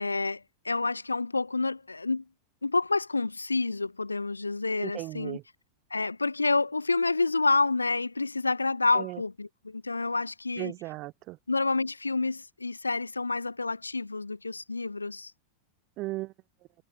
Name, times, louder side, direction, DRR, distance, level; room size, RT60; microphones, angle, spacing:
voice 1, 0.0-2.2 2.6-5.4 5.9-10.7 11.5-15.3, left 3 dB, 80° left, 2.6 m, -28 dB
voice 2, 4.8-5.4 8.9-9.2 10.6-11.4 16.0-16.3, right 19 dB, 40° right, 0.9 m, -36 dB
figure-of-eight pair, 90°, 0 cm